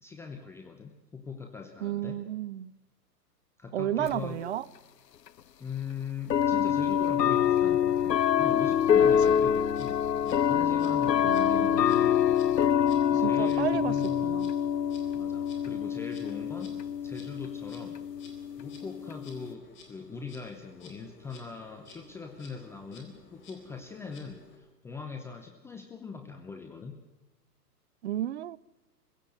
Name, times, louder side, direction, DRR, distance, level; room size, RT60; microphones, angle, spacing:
voice 1, 0.0-2.2 3.6-4.5 5.6-12.2 13.1-14.5 15.1-16.7 17.0-18.0 18.5-27.0, left 5 dB, 5° left, 0.6 m, -41 dB
voice 2, 1.8-2.7 3.7-4.6 9.0-9.2 11.2-12.2 13.1-14.5 28.0-28.6, right 12 dB, 45° right, 0.6 m, -33 dB
sound 1, 4.1-4.2 5.3-5.4 6.3-19.5, left 9 dB, 85° left, 0.7 m, -26 dB
Insect, 9.0-24.6, left 2 dB, 25° left, 4.1 m, -55 dB
24.0 x 16.0 x 7.9 m
figure-of-eight pair, 125°, 48 cm